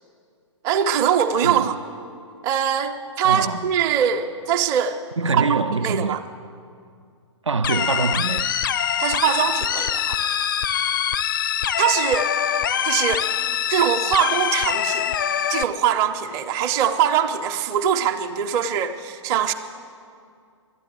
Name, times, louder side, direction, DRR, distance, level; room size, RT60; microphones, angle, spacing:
voice 1, 0.6-1.8 2.4-6.2 9.0-10.2 11.8-12.3 12.8-13.3 13.7-15.2 15.5-19.5, right 8 dB, 20° right, 0.6 m, -22 dB
voice 2, 3.2-3.7 5.2-6.2 7.4-8.5, right 4 dB, 75° right, 0.4 m, -24 dB
sound 1, 7.6-15.6, left 9 dB, 45° left, 0.4 m, -24 dB
12.0 x 10.0 x 9.1 m
figure-of-eight pair, 120°, 16 cm